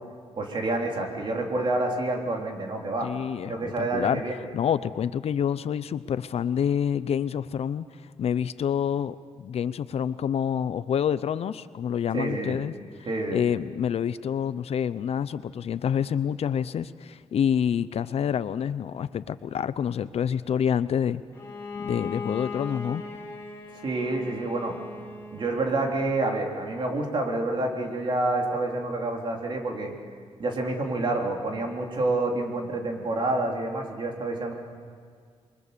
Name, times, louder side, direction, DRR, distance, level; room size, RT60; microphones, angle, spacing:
voice 1, 0.4-3.1 3.4-4.4 12.1-12.6 13.1-13.4 23.7-24.7 25.3-29.9 30.4-34.5, right 2 dB, 45° right, 1 dB, 3.5 m, -28 dB
voice 2, 3.0-4.2 4.5-7.9 8.2-12.7 13.3-21.2 21.7-23.0, left 8 dB, 60° left, 15 dB, 0.7 m, -27 dB
Bowed string instrument, 21.3-26.0, left 4 dB, 20° left, 4.6 m, -38 dB
27.5 x 23.0 x 6.8 m, 2.1 s
wide cardioid pair, 145°, 12 cm